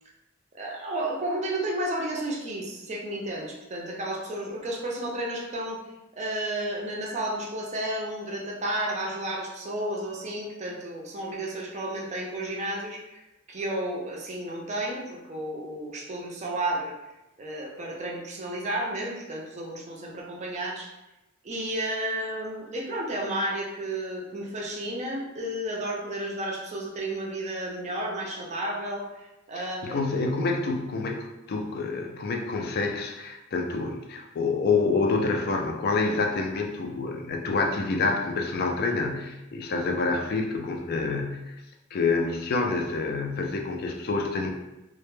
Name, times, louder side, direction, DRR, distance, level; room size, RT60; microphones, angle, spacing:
voice 1, 0.5-5.8 6.1-13.2 13.5-16.9 17.4-20.9 21.4-30.2, right 1 dB, 35° right, -2 dB, 0.4 m, -32 dB
voice 2, 29.6-41.6 41.9-44.5, left 3 dB, 50° left, 2 dB, 0.3 m, -27 dB
2.1 x 2.0 x 3.0 m, 0.98 s
head